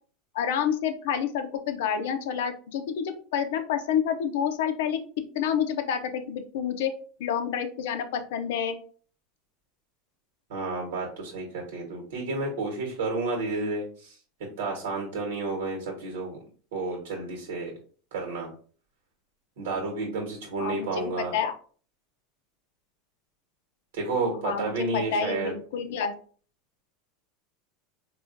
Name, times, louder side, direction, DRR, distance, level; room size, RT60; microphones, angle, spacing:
voice 1, 0.3-5.0 5.3-6.9 7.2-8.8 20.6-21.5 24.4-26.1, left 8 dB, 75° left, 8 dB, 0.5 m, -28 dB
voice 2, 10.5-14.2 14.6-16.4 16.7-17.7 18.1-18.5 19.6-21.3 23.9-25.5, right 3 dB, 80° right, 1 dB, 1.2 m, -31 dB
3.8 x 2.4 x 2.5 m, 0.43 s
supercardioid pair, 120°, 0 cm